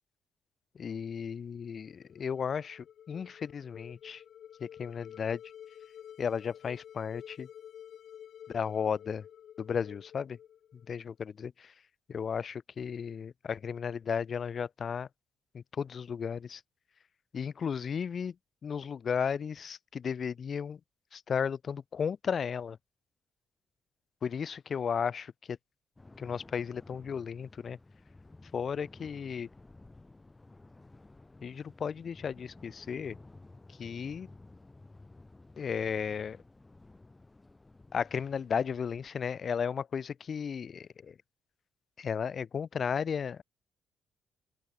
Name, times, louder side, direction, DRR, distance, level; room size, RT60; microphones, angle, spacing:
voice 1, 0.7-4.2 4.6-5.4 6.2-7.5 8.5-9.3 9.6-10.4 10.7-11.7 12.1-15.1 15.5-16.6 17.3-18.4 18.6-20.8 21.1-22.8 24.2-25.6 26.2-27.8 28.5-29.5 31.4-33.2 33.7-34.3 35.6-36.4 37.9-41.2 42.0-43.4, left 7 dB, 50° left, 0.7 m, -34 dB
sound 1, 1.9-11.1, left 10 dB, 65° left, 2.4 m, -51 dB
sound 2, 26.0-39.1, left 2 dB, 20° left, 7.6 m, -54 dB
open air
cardioid pair, 90°, 0 cm